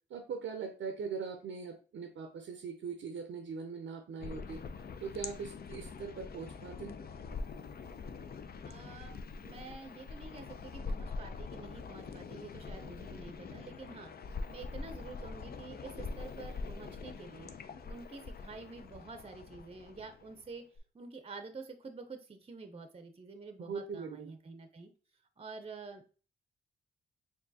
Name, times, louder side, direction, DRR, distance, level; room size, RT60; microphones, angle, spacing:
voice 1, 0.1-4.6 5.0-7.0 23.6-24.3, right 5 dB, 70° right, 7 dB, 0.6 m, -41 dB
sound 1, 4.2-20.8, left 4 dB, 50° left, 0.5 m, -44 dB
voice 2, 8.6-14.1 14.5-17.5 17.8-20.6 20.9-24.9 25.4-26.1, right 4 dB, 30° right, 7 dB, 0.6 m, -48 dB
4.5 x 2.7 x 2.7 m, 0.38 s
supercardioid pair, 45°, 21 cm